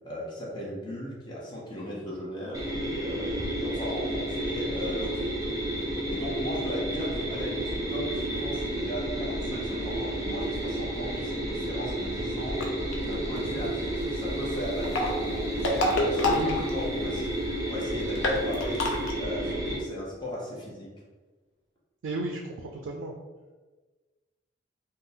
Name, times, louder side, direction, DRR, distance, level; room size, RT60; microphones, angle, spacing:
voice 1, 0.0-5.5 5.8-12.6 13.0-16.5 16.7-20.9, equal, 25° left, -5 dB, 0.7 m, -37 dB
sound 1, 2.5-19.8, right 1 dB, 20° right, 0.4 m, -31 dB
sound 2, 12.5-12.9 14.7-17.2 17.5-17.6 17.8-17.9 18.1-19.1, left 2 dB, 85° left, 0.5 m, -27 dB
voice 2, 16.2-16.6 22.0-23.1, right 2 dB, 90° right, 1 dB, 0.3 m, -33 dB
3.5 x 2.0 x 2.6 m, 1.3 s
head